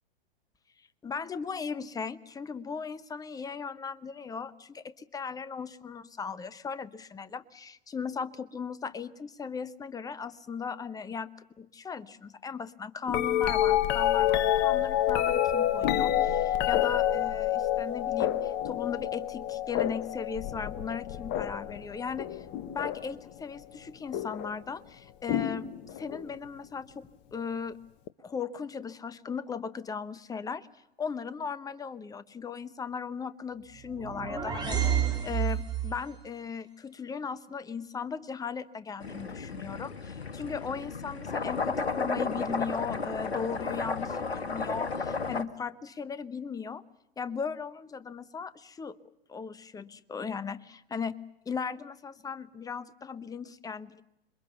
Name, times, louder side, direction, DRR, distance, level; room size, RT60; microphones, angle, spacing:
voice 1, 1.0-11.3 11.6-22.4 22.7-25.7 26.0-27.8 28.2-30.7 31.0-46.8 47.2-49.0 49.3-51.2 51.5-54.0, left 6 dB, 10° left, 16 dB, 0.9 m, -37 dB
sound 1, 13.1-23.2 24.1-24.5 25.3-26.3 28.1-28.2, left 12 dB, 35° left, 1.3 m, -28 dB
sound 2, 33.7-36.1, right 9 dB, 15° right, 4.4 m, -30 dB
waterspring fafe ambient noise, 39.0-45.4, left 4 dB, 85° left, 1.4 m, -33 dB
27.0 x 22.0 x 7.1 m, 0.85 s
hypercardioid pair, 105°, 31 cm